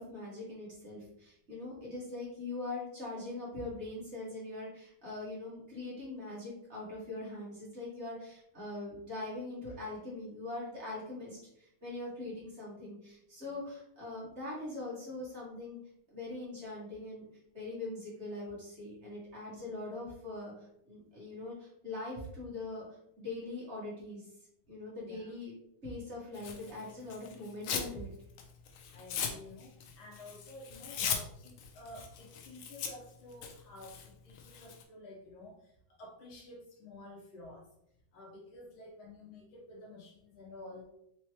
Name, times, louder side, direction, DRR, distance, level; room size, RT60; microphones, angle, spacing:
voice 1, 0.0-15.8 16.1-17.2 17.5-22.8 23.2-24.3 24.7-25.5 25.8-28.1, left 2 dB, 35° right, -6 dB, 1.6 m, -42 dB
Tearing, 26.4-27.9 28.3-34.8, left 7 dB, 90° left, 1.5 m, -39 dB
voice 2, 28.9-37.7 38.1-40.9, left 2 dB, 70° left, -2 dB, 1.8 m, -51 dB
4.5 x 3.0 x 3.0 m, 0.74 s
omnidirectional pair, 2.3 m